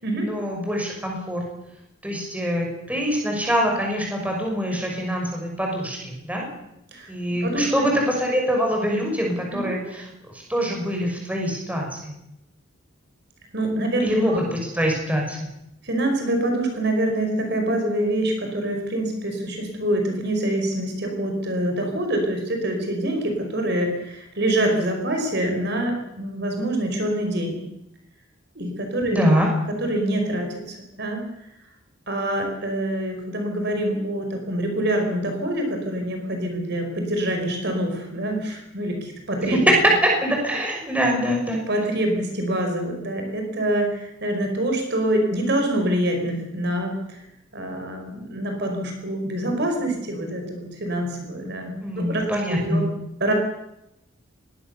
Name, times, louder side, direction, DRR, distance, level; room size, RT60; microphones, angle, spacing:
voice 1, 0.2-1.4 2.0-6.5 7.1-10.0 10.3-12.1 14.0-15.4 29.1-29.5 40.0-41.6 51.8-52.9, equal, 5° right, 0 dB, 5.9 m, -24 dB
voice 2, 7.4-7.9 9.5-9.8 13.5-14.4 15.8-27.6 28.5-29.2 29.7-31.5 32.1-39.6 41.7-47.3 47.5-52.9 53.2-53.3, right 1 dB, 55° right, 3 dB, 4.8 m, -25 dB
23.0 x 19.0 x 6.9 m, 0.85 s
head